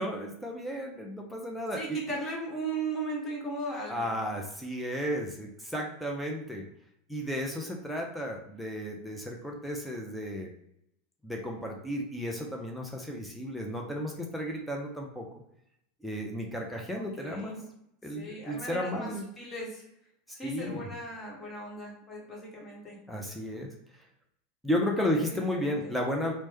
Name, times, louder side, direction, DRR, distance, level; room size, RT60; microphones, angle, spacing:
voice 1, 0.0-2.0 3.9-6.7 7.1-10.5 11.2-15.3 16.0-17.6 18.0-19.2 20.4-20.8 23.1-23.7 24.6-26.3, equal, ahead, -1 dB, 0.5 m, -33 dB
voice 2, 1.7-4.4 16.9-17.7 18.1-19.8 20.3-23.0 25.1-25.9, right 2 dB, 25° left, -3 dB, 1.3 m, -37 dB
3.0 x 2.1 x 2.9 m, 0.77 s
figure-of-eight pair, 85°, 0 cm